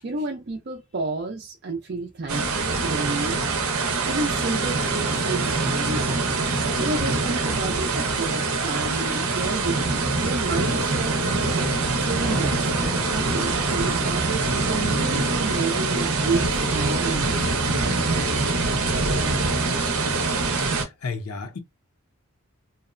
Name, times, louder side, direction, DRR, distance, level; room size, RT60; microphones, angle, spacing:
voice 1, 0.0-3.5 4.1-6.2 6.8-11.2 12.0-12.6 13.1-17.6, right 3 dB, 45° right, 0.4 m, -31 dB
sound 1, 2.3-20.8, right 3 dB, 80° right, 0.7 m, -24 dB
Thunder / Rain, 8.7-14.0, right 1 dB, 10° left, 0.7 m, -38 dB
voice 2, 20.6-21.6, left 4 dB, 80° left, 0.6 m, -33 dB
2.8 x 2.1 x 2.4 m
head